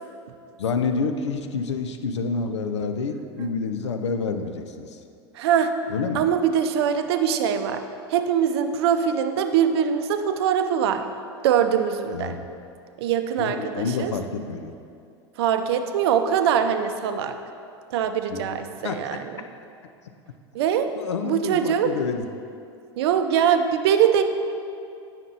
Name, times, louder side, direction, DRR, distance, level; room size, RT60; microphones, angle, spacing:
voice 1, 0.6-5.0 5.9-6.2 12.1-12.4 13.4-14.7 18.3-18.5 18.8-19.2 21.0-22.2, left 4 dB, 80° left, 7 dB, 0.5 m, -28 dB
voice 2, 5.3-5.7 6.1-7.8 8.1-11.1 11.4-12.3 13.0-14.1 15.4-17.4 17.9-19.2 20.5-20.9 21.2-21.9 23.0-24.2, right 8 dB, 65° right, 8 dB, 0.5 m, -22 dB
8.9 x 5.7 x 2.8 m, 2.5 s
hypercardioid pair, 85°, 15 cm